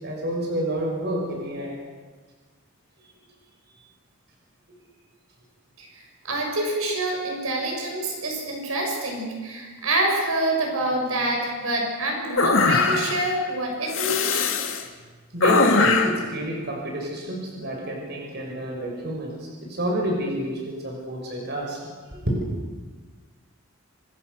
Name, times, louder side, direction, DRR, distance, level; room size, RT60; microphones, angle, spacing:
voice 1, 0.0-1.8 15.3-19.3 19.6-21.8 22.1-22.4, equal, 50° right, 0 dB, 6.1 m, -28 dB
voice 2, 5.8-14.5, right 1 dB, 85° right, 0 dB, 7.3 m, -27 dB
sound 1, 12.4-13.3 13.9-14.8 15.4-16.2, left 4 dB, 65° left, 2.6 m, -21 dB
27.0 x 25.0 x 6.8 m, 1.4 s
head